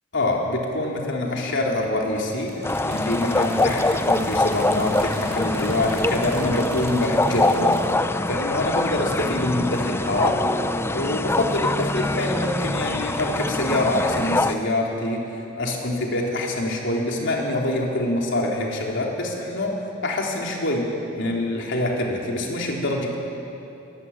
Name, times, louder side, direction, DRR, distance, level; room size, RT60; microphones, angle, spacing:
voice 1, 0.1-7.8 8.3-10.4 10.9-15.3 15.6-19.8 20.0-23.1, left 1 dB, 65° left, -1 dB, 3.8 m, -25 dB
sound 1, 2.4-8.0, right 3 dB, 50° right, 4.1 m, -43 dB
sound 2, 2.6-14.5, left 2 dB, 10° left, 0.6 m, -24 dB
23.0 x 14.0 x 9.9 m, 3.0 s
head